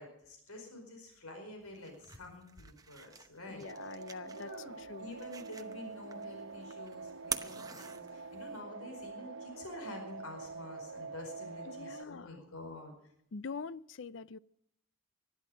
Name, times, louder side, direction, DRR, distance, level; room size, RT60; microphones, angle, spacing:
voice 1, 0.0-4.0 4.3-12.9, left 1 dB, 85° left, 4.9 m, -48 dB
sound 1, 1.6-8.6, right 6 dB, 15° right, 0.8 m, -46 dB
voice 2, 3.5-4.5 4.8-5.1 11.7-12.4 13.3-14.4, left 5 dB, 55° left, 0.5 m, -44 dB
sound 2, 3.6-12.0, right 4 dB, 60° right, 0.8 m, -46 dB
20.0 x 13.0 x 5.2 m
head